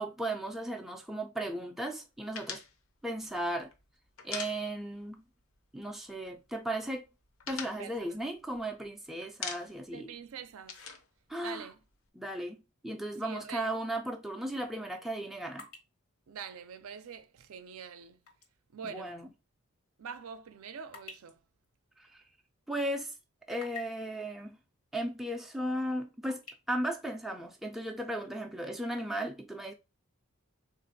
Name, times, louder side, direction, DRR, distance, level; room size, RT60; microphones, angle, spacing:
voice 1, 0.0-2.6 3.0-3.7 4.2-5.3 5.7-7.1 7.5-10.1 11.3-11.6 12.2-15.7 18.8-19.2 22.0-22.2 22.7-23.1 23.5-24.6 24.9-26.4 26.7-29.7, right 1 dB, ahead, 0.3 m, -36 dB
sound 1, 2.3-5.1 5.4-5.6 5.9-6.6 6.9-8.9 9.2-10.0 10.2-12.1, left 6 dB, 65° left, 0.6 m, -43 dB
voice 2, 7.8-8.2 9.9-10.9 11.4-11.8 13.2-13.7 16.3-18.2 18.7-19.2 20.0-21.4, right 6 dB, 70° right, 0.4 m, -45 dB
sound 2, 15.5-18.6 18.9-19.1 19.7-22.8 23.2-24.1 25.1-25.2 25.6-26.5, left 5 dB, 85° left, 1.2 m, -52 dB
3.8 x 2.5 x 2.6 m
head